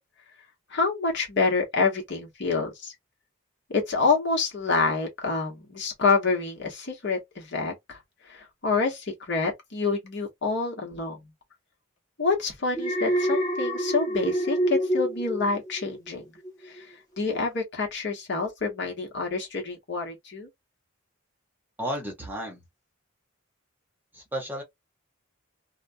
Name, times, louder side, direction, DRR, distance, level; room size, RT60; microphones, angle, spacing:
voice 1, 0.7-2.9 3.7-8.0 8.3-11.3 12.2-16.2 16.7-16.9 17.2-20.5, left 4 dB, 60° left, 1.1 m, -27 dB
Alarm, 12.7-16.1 16.4-16.8, right 1 dB, 20° left, 0.9 m, -27 dB
voice 2, 21.8-22.6 24.1-24.6, equal, 10° right, 0.8 m, -33 dB
2.4 x 2.3 x 2.5 m
head